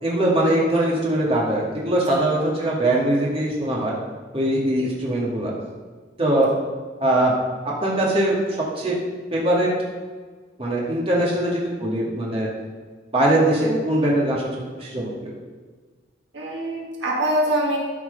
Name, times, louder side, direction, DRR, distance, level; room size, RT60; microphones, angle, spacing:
voice 1, 0.0-3.9 4.3-5.5 6.2-6.5 7.0-7.3 7.6-8.4 8.8-9.0 9.3-9.7 10.6-12.5 13.1-15.3, right 1 dB, 30° right, -5 dB, 2.1 m, -21 dB
voice 2, 16.3-17.8, right 1 dB, 70° right, -2 dB, 1.7 m, -24 dB
13.0 x 4.7 x 5.2 m, 1.5 s
head